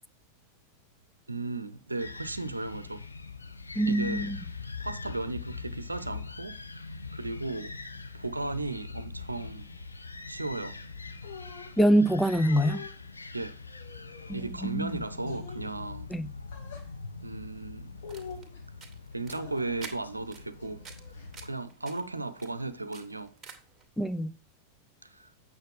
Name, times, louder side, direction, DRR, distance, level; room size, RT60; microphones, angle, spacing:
voice 1, 1.3-3.0 3.9-4.3 4.8-6.6 7.1-7.7 8.1-9.7 10.3-10.8 13.3-13.6 14.3-16.1 17.2-18.0 19.1-20.8 21.4-23.3 25.0-25.3, right 3 dB, 80° right, 0.7 m, -35 dB
sound 1, 2.0-21.5, left 4 dB, 80° left, 0.7 m, -42 dB
voice 2, 3.8-4.4 11.8-12.8 14.3-14.9 16.1-16.3 24.0-24.4, right 1 dB, 5° left, 0.5 m, -25 dB
sound 2, 11.2-11.8 12.4-12.9 13.6-14.5 15.2-15.7 16.5-16.9 18.0-18.6 19.3-19.9 20.6-21.4, left 6 dB, 60° left, 4.1 m, -45 dB
sound 3, 17.9-23.8, right 5 dB, 20° right, 2.4 m, -50 dB
8.8 x 6.9 x 3.8 m
figure-of-eight pair, 90°, 0 cm